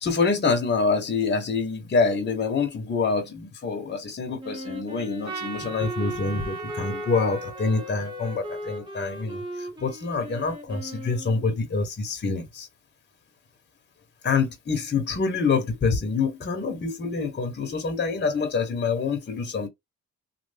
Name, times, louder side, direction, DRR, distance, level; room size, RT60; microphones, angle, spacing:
voice 1, 0.0-12.7 14.2-19.7, left 4 dB, 35° left, 1.2 m, -26 dB
Wind instrument woodwind instrument, 4.4-11.5, equal, 15° right, 1.4 m, -38 dB
Trumpet, 5.2-9.6, right 5 dB, 70° right, 1.1 m, -39 dB
3.2 x 2.3 x 3.5 m
cardioid pair, 90°, 30 cm